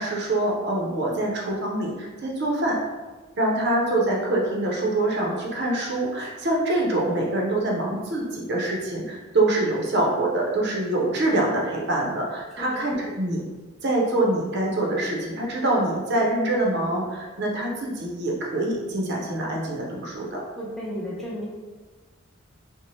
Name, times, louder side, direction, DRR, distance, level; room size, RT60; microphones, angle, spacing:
voice 1, 0.0-2.8 3.4-13.4 13.8-20.4, right 1 dB, 50° right, -2 dB, 0.5 m, -25 dB
voice 2, 12.6-13.1 20.6-21.5, equal, ahead, -6 dB, 0.5 m, -34 dB
2.7 x 2.1 x 3.0 m, 1.3 s
head